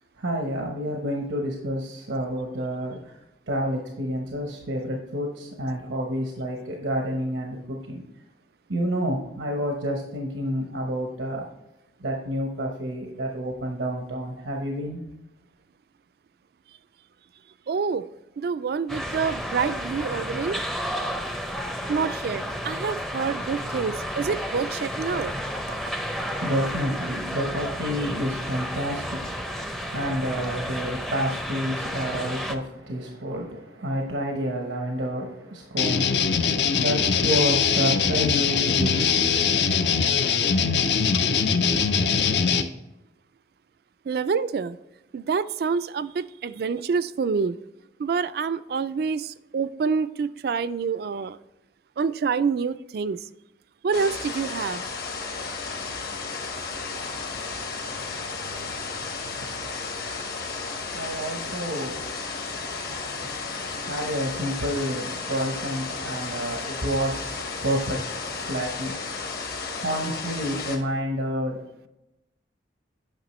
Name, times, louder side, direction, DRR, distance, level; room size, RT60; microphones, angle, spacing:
voice 1, 0.2-3.2 3.5-8.0 8.7-11.4 12.0-15.0 26.0-39.5 56.9-69.2 69.8-71.9, equal, 90° right, 1 dB, 1.0 m, -30 dB
voice 2, 17.7-18.0 18.4-20.6 21.9-25.3 44.1-44.8 45.1-47.6 48.0-51.4 52.0-53.2 53.8-54.8, right 5 dB, 55° right, 15 dB, 0.3 m, -27 dB
sound 1, 18.9-32.5, equal, ahead, 0.5 m, -32 dB
sound 2, 35.8-42.6, left 6 dB, 70° left, 0.6 m, -22 dB
sound 3, 53.9-70.8, left 4 dB, 55° left, 1.1 m, -33 dB
8.9 x 5.8 x 3.1 m, 0.91 s
head